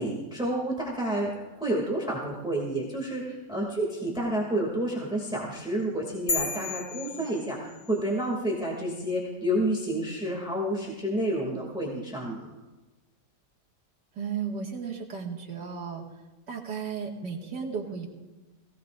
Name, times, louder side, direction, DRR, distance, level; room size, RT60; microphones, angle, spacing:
voice 1, 0.0-12.4, right 1 dB, ahead, -2 dB, 2.4 m, -30 dB
sound 1, 6.3-8.0, left 4 dB, 45° left, 1.4 m, -33 dB
voice 2, 14.2-16.0 16.5-18.1, right 6 dB, 65° right, -2 dB, 2.6 m, -34 dB
21.5 x 17.0 x 2.6 m, 1.1 s
omnidirectional pair, 2.0 m